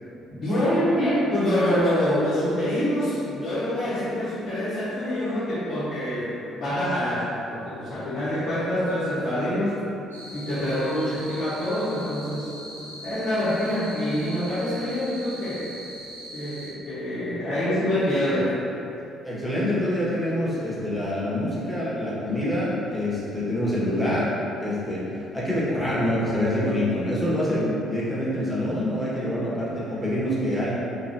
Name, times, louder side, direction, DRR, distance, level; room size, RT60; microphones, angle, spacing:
voice 1, 0.3-9.8 10.3-15.7 16.3-18.5, equal, 50° left, -13 dB, 1.1 m, -26 dB
sound 1, 10.1-16.7, right 1 dB, 90° right, 0.5 m, -41 dB
voice 2, 19.2-24.3 24.6-30.7, left 1 dB, 5° right, -9 dB, 1.3 m, -26 dB
3.5 x 3.1 x 2.7 m, 2.8 s
figure-of-eight pair, 45°, 0 cm